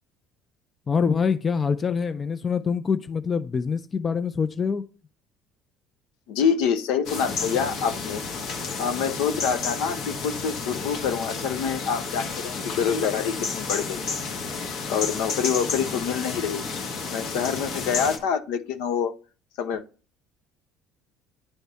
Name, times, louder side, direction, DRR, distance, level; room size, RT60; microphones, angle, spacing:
voice 1, 0.9-4.8, left 6 dB, 20° left, 0.3 m, -25 dB
voice 2, 6.3-8.2 8.8-14.0 14.9-16.6 17.1-19.1 19.6-19.8, left 7 dB, 80° left, 0.8 m, -26 dB
sound 1, 7.0-18.2, left 4 dB, 50° left, 1.1 m, -31 dB
10.0 x 3.5 x 4.0 m
cardioid pair, 175°, 0 cm